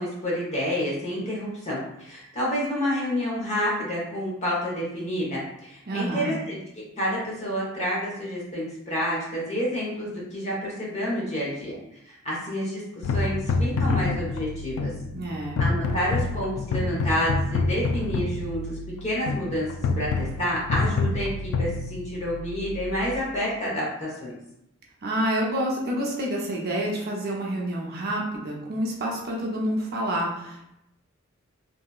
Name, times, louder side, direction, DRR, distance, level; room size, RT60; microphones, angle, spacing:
voice 1, 0.0-6.6 7.0-14.9 15.6-19.7 20.0-24.4, equal, 35° left, -5 dB, 1.1 m, -29 dB
voice 2, 5.9-6.4 15.1-15.6 25.0-30.6, right 1 dB, 50° right, -2 dB, 0.6 m, -28 dB
sound 1, 13.0-23.2, left 3 dB, 85° left, 0.3 m, -28 dB
2.9 x 2.7 x 2.3 m, 0.81 s
head